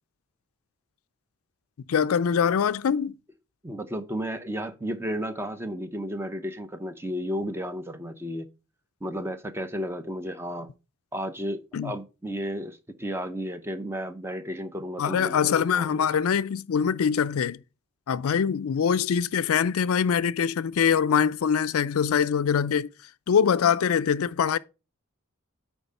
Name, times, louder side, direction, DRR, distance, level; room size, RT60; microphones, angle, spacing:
voice 1, 1.9-3.2 11.7-11.9 15.0-17.6 18.1-22.9 23.3-24.6, left 7 dB, 75° left, 0.4 m, -23 dB
voice 2, 3.6-8.5 9.0-10.7 11.1-16.1, equal, 10° right, 0.6 m, -33 dB
9.0 x 3.6 x 5.4 m
head